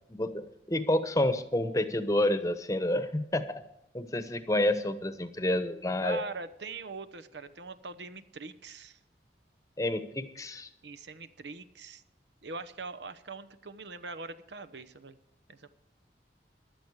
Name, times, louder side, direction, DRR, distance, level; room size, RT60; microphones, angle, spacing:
voice 1, 0.1-3.6 3.9-6.2 9.8-10.7, left 1 dB, 20° left, 11 dB, 1.0 m, -29 dB
voice 2, 6.0-9.0 10.8-12.0 12.4-15.2 15.5-15.7, right 4 dB, 85° right, 11 dB, 1.0 m, -42 dB
15.5 x 11.5 x 4.8 m, 0.82 s
head